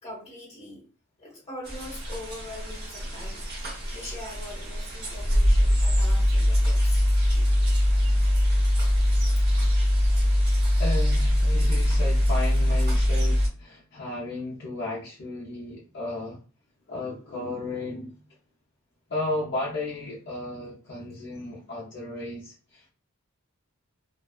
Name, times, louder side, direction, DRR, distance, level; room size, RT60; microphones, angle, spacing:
voice 1, 0.0-0.9 1.2-3.4 3.9-7.1 8.1-8.2, left 1 dB, 30° left, 1.2 m, -42 dB
sound 1, 1.6-13.5, equal, 45° right, 0.9 m, -22 dB
voice 2, 10.8-16.4 16.9-18.2 19.1-22.9, left 2 dB, 50° left, 0.7 m, -34 dB
2.5 x 2.2 x 2.3 m
head